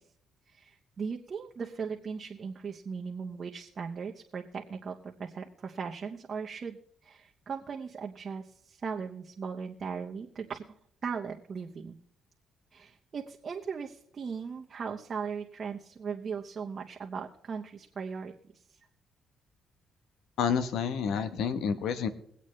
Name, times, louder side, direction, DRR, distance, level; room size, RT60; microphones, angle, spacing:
voice 1, 0.5-10.6 11.0-12.0 12.7-18.3, right 6 dB, 45° right, 0 dB, 1.1 m, -38 dB
voice 2, 20.4-22.1, left 7 dB, 80° left, 11 dB, 1.0 m, -29 dB
22.5 x 8.2 x 3.3 m, 0.66 s
cardioid pair, 90°, 0 cm